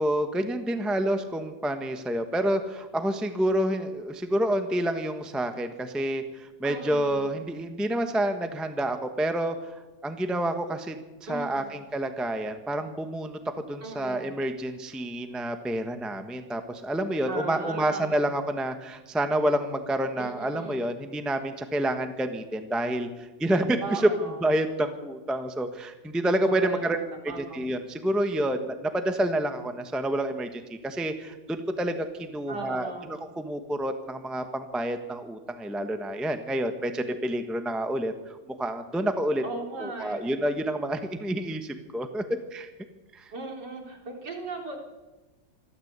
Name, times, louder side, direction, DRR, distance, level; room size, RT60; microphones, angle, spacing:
voice 1, 0.0-11.0 11.3-24.1 24.4-27.0 27.2-39.4 39.8-42.7 43.1-43.3, right 1 dB, ahead, 7 dB, 1.1 m, -28 dB
voice 2, 6.6-7.3 11.3-11.7 13.8-14.3 17.3-18.1 20.2-20.8 23.8-24.4 26.5-27.0 27.3-27.6 32.5-33.1 39.4-40.3 43.3-44.8, right 3 dB, 55° right, 1 dB, 4.3 m, -37 dB
26.0 x 13.0 x 8.3 m, 1.1 s
omnidirectional pair, 2.2 m